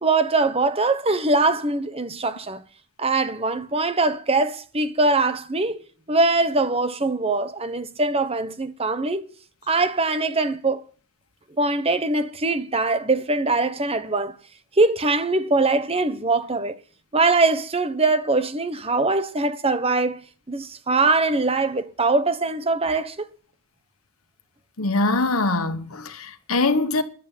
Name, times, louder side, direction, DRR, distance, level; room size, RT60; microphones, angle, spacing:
voice 1, 0.0-2.6 3.0-5.8 6.1-9.3 9.7-10.8 11.6-14.4 14.8-16.8 17.1-20.2 20.5-23.3, right 3 dB, 25° right, 1.1 m, -22 dB
voice 2, 24.8-27.0, left 2 dB, 85° left, 1.4 m, -23 dB
13.5 x 11.0 x 7.4 m
head